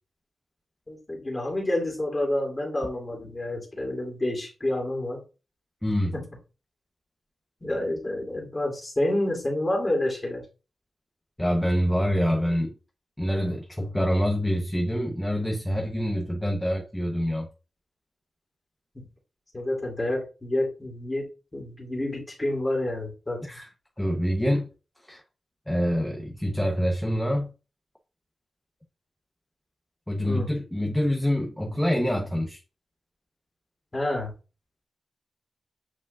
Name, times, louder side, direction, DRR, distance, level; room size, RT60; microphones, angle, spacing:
voice 1, 0.9-5.2 6.1-6.2 7.6-10.4 18.9-19.0 19.5-23.5 30.3-30.5 33.9-34.3, left 1 dB, 20° left, 2.5 m, -29 dB
voice 2, 5.8-6.1 11.4-12.7 13.2-17.5 23.4-23.7 24.0-24.7 25.0-25.2 25.7-27.5 30.1-32.6, equal, 5° left, 0.8 m, -26 dB
8.1 x 4.9 x 2.4 m
wide cardioid pair, 155°, 0 cm